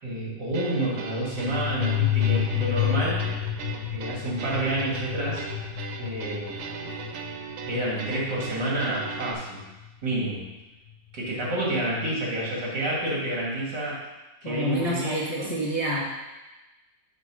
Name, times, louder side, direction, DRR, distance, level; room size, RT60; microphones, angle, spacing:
voice 1, 0.0-3.2 3.9-5.4 6.0-6.6 7.7-9.6 10.0-10.4 11.1-14.0 14.4-15.5, right 1 dB, 70° right, -5 dB, 2.9 m, -29 dB
sound 1, 0.5-9.3, right 6 dB, 90° right, 1.5 m, -38 dB
sound 2, 1.2-9.6, left 12 dB, 75° left, 0.4 m, -30 dB
voice 2, 14.4-16.0, equal, 20° left, -6 dB, 1.2 m, -28 dB
6.8 x 4.5 x 6.2 m, 1.1 s
omnidirectional pair, 2.0 m